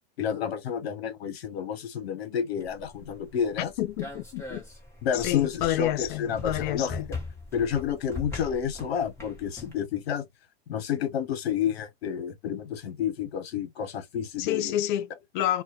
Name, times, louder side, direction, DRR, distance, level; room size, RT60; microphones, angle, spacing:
voice 1, 0.2-3.7 5.0-6.9 7.5-10.3 10.7-14.7, left 8 dB, 75° left, 0.9 m, -30 dB
sound 1, 2.6-9.7, left 3 dB, 10° left, 1.0 m, -41 dB
voice 2, 3.8-4.6 5.1-7.1 14.4-15.6, left 13 dB, 55° left, 0.5 m, -29 dB
2.2 x 2.1 x 2.7 m
hypercardioid pair, 130°, 31 cm